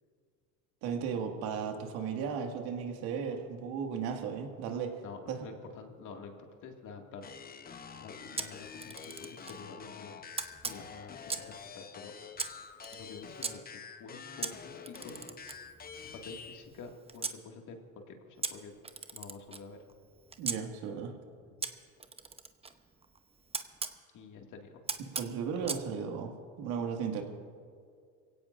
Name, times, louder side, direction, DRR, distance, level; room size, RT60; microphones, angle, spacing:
voice 1, 0.8-5.0 5.3-5.5 20.4-21.1 25.0-26.3 26.6-27.2, right 6 dB, 65° right, 3 dB, 2.1 m, -35 dB
voice 2, 5.0-6.3 6.6-7.2 8.0-10.1 10.6-11.4 11.6-12.1 12.9-13.6 14.0-15.2 16.1-18.7 19.1-19.8 24.1-24.7, left 4 dB, 50° left, 2 dB, 2.2 m, -48 dB
sound 1, 7.2-16.7, left 6 dB, 20° left, 0.8 m, -47 dB
Camera, 8.4-9.6 10.4-11.6 12.4-13.5 14.4-17.4 18.4-20.6 21.6-24.0 24.9-25.9, right 4 dB, 15° right, 0.8 m, -40 dB
23.0 x 17.0 x 2.6 m, 2.2 s
supercardioid pair, 95°, 41 cm